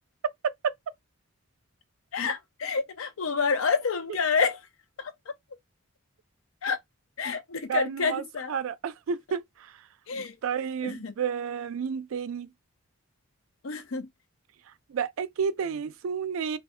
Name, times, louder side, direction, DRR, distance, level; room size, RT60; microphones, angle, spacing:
voice 1, 2.1-4.6 5.0-5.1 6.6-6.8 7.2-8.5 10.1-10.3 10.8-11.1 13.6-14.1, left 5 dB, 80° left, 0.6 m, -28 dB
voice 2, 7.7-9.4 10.4-12.5 14.9-16.6, right 6 dB, 75° right, 0.4 m, -30 dB
2.3 x 2.1 x 3.6 m
head